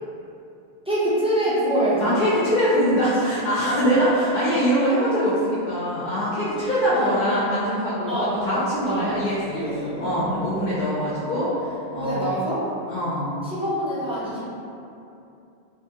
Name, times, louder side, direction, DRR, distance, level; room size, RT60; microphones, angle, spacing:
voice 1, 0.9-2.2 2.7-2.9 3.7-3.8 6.6-7.5 8.1-8.6 8.9-9.1 9.5-10.9 11.9-12.6 13.4-14.5, right 1 dB, 10° right, -10 dB, 0.4 m, -26 dB
voice 2, 2.0-12.3 12.9-13.3, equal, 55° left, -9 dB, 0.7 m, -23 dB
2.8 x 2.3 x 2.7 m, 2.6 s
omnidirectional pair, 1.1 m